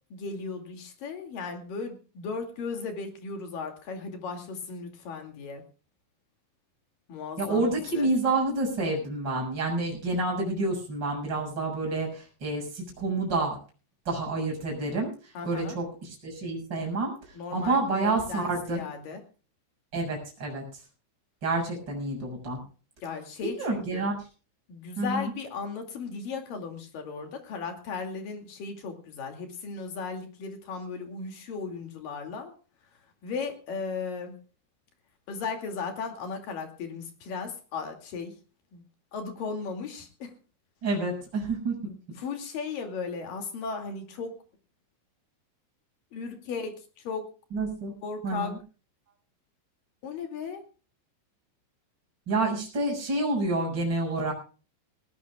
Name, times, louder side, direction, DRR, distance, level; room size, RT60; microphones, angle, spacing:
voice 1, 0.1-5.6 7.1-8.1 15.3-15.8 17.3-19.2 23.0-24.1 24.7-32.5 33.2-34.4 35.3-38.3 38.7-38.8 39.1-40.3 41.9-44.3 46.1-47.3 48.0-48.5 50.0-50.6, left 5 dB, 50° left, 4 dB, 3.7 m, -36 dB
voice 2, 7.4-13.6 14.1-15.1 15.4-17.1 17.5-18.8 19.9-20.6 21.4-22.6 23.4-24.2 25.0-25.3 40.8-41.7 47.5-47.9 48.2-48.6 52.3-54.3, right 2 dB, 20° right, -1 dB, 7.2 m, -28 dB
19.5 x 19.0 x 2.4 m, 0.36 s
omnidirectional pair, 5.6 m